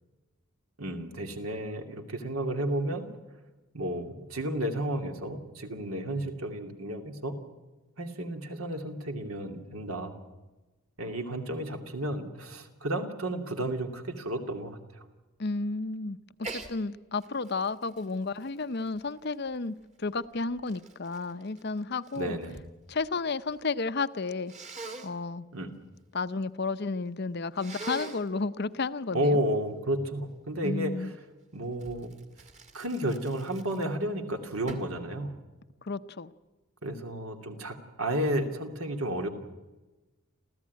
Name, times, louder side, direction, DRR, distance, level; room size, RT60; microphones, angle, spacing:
voice 1, 0.8-3.1 3.7-7.3 8.0-10.1 11.0-15.0 22.1-22.5 25.5-25.7 29.1-31.1 31.5-32.1 32.7-35.3 36.8-39.3, right 1 dB, 75° right, 5 dB, 2.7 m, -32 dB
voice 2, 15.4-22.4 22.9-24.5 25.0-25.5 26.1-29.4 30.6-31.1 35.8-36.3, left 3 dB, 50° left, 13 dB, 0.7 m, -32 dB
Sneeze, 16.4-16.7 17.2-19.5 20.2-22.7 23.0-23.6 24.5-25.1 27.5-28.3 31.8-34.1 34.7-35.0, right 3 dB, 30° right, 2.1 m, -43 dB
28.0 x 15.0 x 9.5 m, 1.2 s
head